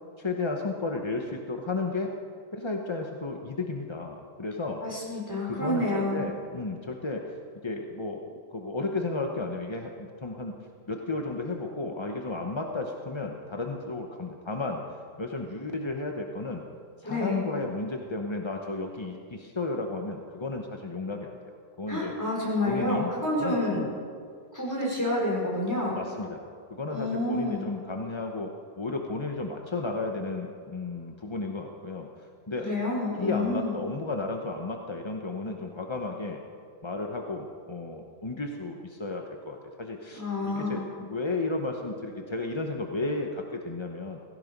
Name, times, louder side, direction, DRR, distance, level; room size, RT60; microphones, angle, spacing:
voice 1, 0.2-2.1 2.5-4.8 5.4-7.3 7.6-10.5 10.9-14.8 15.2-16.6 17.0-22.1 22.6-23.1 23.4-23.9 25.9-32.1 32.5-32.7 33.2-36.4 36.8-44.2, left 3 dB, 25° left, 2 dB, 0.6 m, -33 dB
voice 2, 4.8-6.2 17.0-17.4 21.9-23.8 24.5-25.9 26.9-27.7 32.6-33.8 40.1-40.9, left 2 dB, 10° left, -5 dB, 5.0 m, -29 dB
17.0 x 16.0 x 5.4 m, 2.2 s
omnidirectional pair, 1.8 m